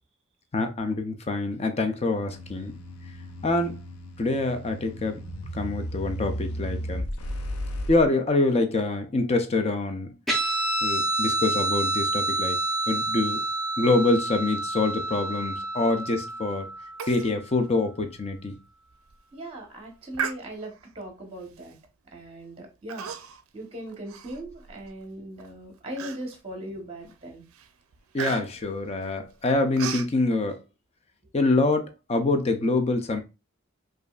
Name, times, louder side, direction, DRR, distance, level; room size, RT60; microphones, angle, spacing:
voice 1, 0.5-2.7 3.4-3.8 4.2-5.2 5.5-7.1 7.9-10.1 10.8-12.6 12.9-13.4 13.8-16.7 17.1-18.6 28.1-30.6 31.3-33.2, left 2 dB, 30° left, 0.5 m, -25 dB
sound 1, 2.3-8.1, equal, 85° left, 0.5 m, -35 dB
Guitar, 10.3-17.2, right 2 dB, ahead, 0.8 m, -28 dB
Human voice, 17.0-17.3 17.6-17.7 18.2-18.4 18.9-19.2 20.1-20.9 21.6-21.9 22.9-23.5 23.9-24.9 25.4-25.5 26.0-26.5 27.0-27.2 27.5-30.1, right 7 dB, 70° right, 0.4 m, -35 dB
voice 2, 19.3-21.7 22.1-23.1 23.5-27.4, right 1 dB, 25° right, 1.0 m, -39 dB
5.1 x 2.5 x 2.3 m
head